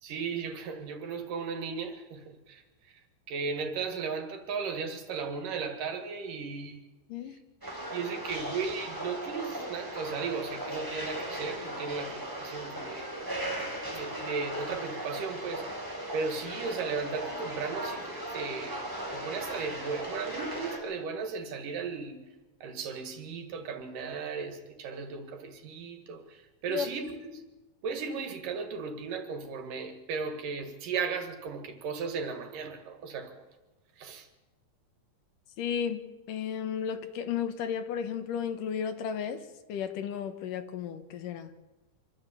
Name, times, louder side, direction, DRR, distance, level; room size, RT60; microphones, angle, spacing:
voice 1, 0.0-3.0 3.3-6.9 7.3-7.4 7.9-13.1 13.6-15.7 16.1-22.2 22.6-27.4 27.8-33.5 34.0-34.3, right 5 dB, 80° right, 3.5 m, -36 dB
sound 1, 7.6-20.8, right 1 dB, 5° right, 4.5 m, -37 dB
voice 2, 35.6-39.4 39.7-41.5, left 8 dB, 80° left, 2.8 m, -33 dB
25.0 x 13.0 x 8.4 m
omnidirectional pair, 3.7 m